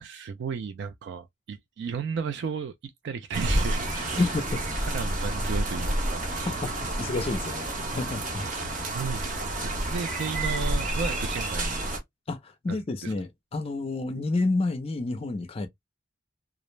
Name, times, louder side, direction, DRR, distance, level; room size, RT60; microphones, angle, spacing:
voice 1, 0.0-4.3 4.8-6.6 8.3-11.9 12.7-13.1, right 6 dB, 60° right, 0.3 m, -35 dB
sound 1, 3.3-12.0, right 1 dB, 40° right, 0.8 m, -29 dB
voice 2, 4.2-4.6 6.5-6.7 7.0-8.5 12.3-15.7, left 2 dB, 30° left, 0.4 m, -29 dB
2.4 x 2.0 x 3.0 m
head